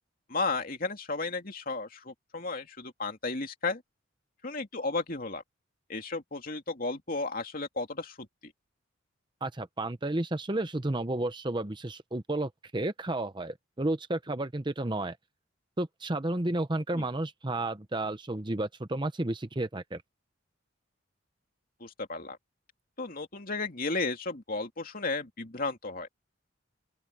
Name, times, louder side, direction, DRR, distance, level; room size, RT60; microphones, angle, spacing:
voice 1, 0.3-3.8 4.4-5.4 5.9-8.5 16.9-17.0 21.8-22.4 23.0-26.1, left 3 dB, 45° left, 2.8 m, -34 dB
voice 2, 9.4-15.2 15.8-20.0, right 2 dB, 25° right, 0.8 m, -32 dB
open air
head